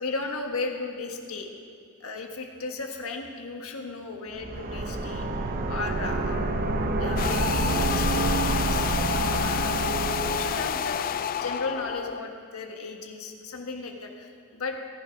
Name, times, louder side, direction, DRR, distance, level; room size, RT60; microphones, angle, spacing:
voice 1, 0.0-1.5 2.0-6.6 7.0-9.8 10.2-14.9, left 3 dB, 65° left, 3 dB, 1.6 m, -35 dB
sound 1, 4.3-10.8, right 2 dB, 40° right, 0.9 m, -28 dB
sound 2, 7.2-12.2, left 9 dB, 40° left, 0.3 m, -29 dB
18.0 x 10.5 x 5.3 m, 2.3 s
head